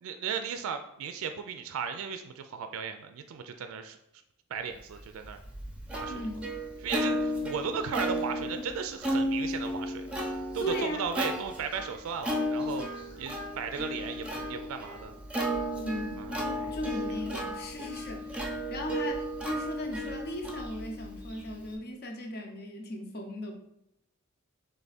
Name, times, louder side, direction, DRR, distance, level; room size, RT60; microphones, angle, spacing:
voice 1, 0.0-4.0 4.5-5.4 5.9-6.1 6.8-10.1 10.5-12.9 13.2-15.1 16.2-16.5, right 6 dB, 75° right, 8 dB, 0.3 m, -36 dB
Plucked string instrument, 5.0-21.7, equal, 5° right, 0.6 m, -34 dB
voice 2, 6.1-6.5 10.6-11.1 15.8-23.6, equal, 50° left, 3 dB, 0.8 m, -37 dB
3.4 x 3.4 x 4.1 m, 0.80 s
head